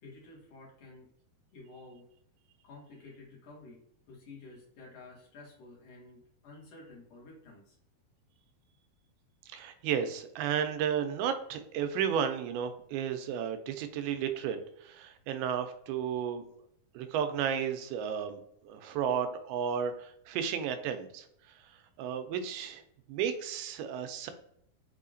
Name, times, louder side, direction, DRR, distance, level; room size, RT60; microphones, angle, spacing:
voice 1, 0.0-1.1 1.5-2.0 2.6-3.8 4.1-7.8, left 3 dB, 55° left, -4 dB, 2.1 m, -51 dB
voice 2, 9.5-16.4 16.9-22.8 23.1-24.3, right 8 dB, 85° right, 8 dB, 2.4 m, -33 dB
6.2 x 2.8 x 2.6 m, 0.71 s
omnidirectional pair, 4.4 m